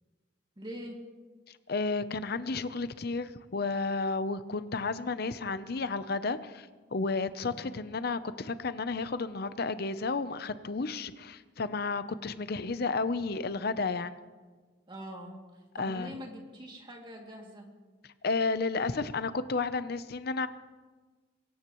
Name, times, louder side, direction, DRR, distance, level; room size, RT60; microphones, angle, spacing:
voice 1, 0.6-1.0 7.3-7.6 14.9-17.7, equal, 25° right, 0 dB, 2.5 m, -44 dB
voice 2, 1.7-14.1 15.8-16.1 18.2-20.5, left 3 dB, 60° left, 13 dB, 0.7 m, -32 dB
23.0 x 18.0 x 3.1 m, 1.4 s
head